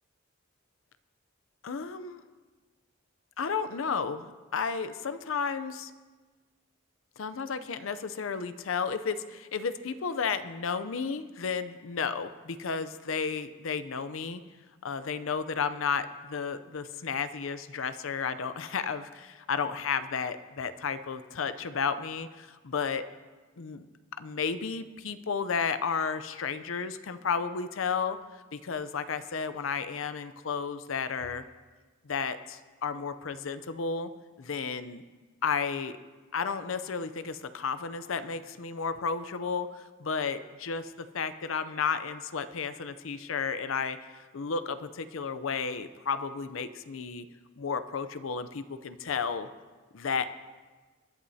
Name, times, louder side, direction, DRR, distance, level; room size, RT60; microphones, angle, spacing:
voice 1, 1.6-2.2 3.4-5.9 7.2-14.4 14.8-23.0 23.6-23.9 24.2-28.2 28.5-31.4 32.1-34.1 34.4-35.0 35.4-36.0 36.3-47.3 47.6-49.5 49.9-50.3, left 5 dB, 70° left, 12 dB, 0.6 m, -32 dB
21.5 x 11.5 x 2.8 m, 1.3 s
head